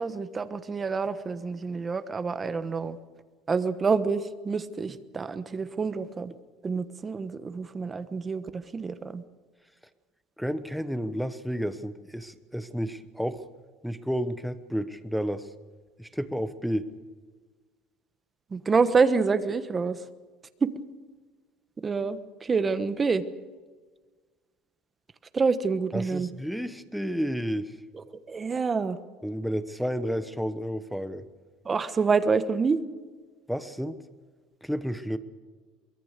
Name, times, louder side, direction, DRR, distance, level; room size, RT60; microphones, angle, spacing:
voice 1, 0.0-3.0 3.5-6.3 6.6-9.2 18.5-20.0 20.6-20.7 21.8-23.2 25.3-26.3 28.3-29.0 31.6-32.8, right 5 dB, 20° right, 12 dB, 1.1 m, -27 dB
voice 2, 10.4-13.4 13.8-15.5 16.0-16.9 25.9-27.7 29.2-31.2 33.5-34.0 34.6-35.2, equal, ahead, 12 dB, 1.1 m, -31 dB
23.5 x 21.5 x 6.7 m, 1.4 s
cardioid pair, 155°, 0 cm